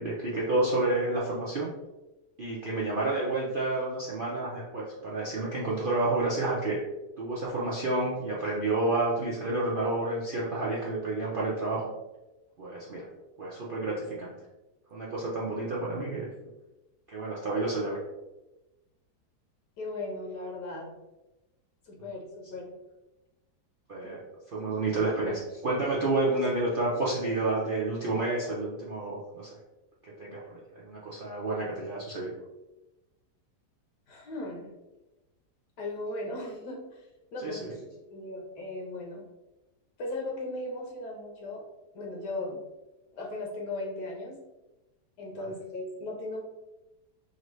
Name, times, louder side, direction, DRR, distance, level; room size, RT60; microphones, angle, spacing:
voice 1, 0.0-1.7 2.4-6.8 7.2-11.9 12.6-13.1 13.4-14.3 14.9-16.3 17.1-18.0 23.9-24.2 24.5-29.6 30.2-30.6 30.8-32.3 37.4-37.7 45.4-45.5, right 2 dB, 60° right, -6 dB, 0.5 m, -30 dB
voice 2, 19.8-20.9 21.8-22.7 24.0-24.1 24.7-24.8 34.1-34.7 35.8-37.1 37.3-39.2 40.0-41.6 41.9-42.6 43.1-44.3 45.2-46.4, left 2 dB, 75° left, -1 dB, 1.6 m, -37 dB
5.2 x 2.6 x 3.1 m, 1.0 s
omnidirectional pair, 1.8 m